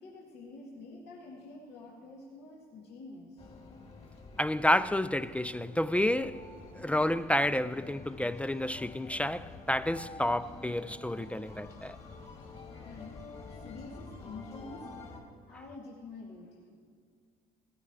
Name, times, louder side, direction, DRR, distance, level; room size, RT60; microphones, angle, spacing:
voice 1, 0.0-3.5 12.7-13.2 13.5-16.8, left 3 dB, 75° left, 2.2 m, -48 dB
sound 1, 3.4-15.2, left 3 dB, 35° left, 2.6 m, -48 dB
voice 2, 4.4-6.4 6.7-12.0, left 1 dB, 10° left, 0.3 m, -30 dB
17.0 x 14.5 x 4.8 m
cardioid pair, 110°, 17 cm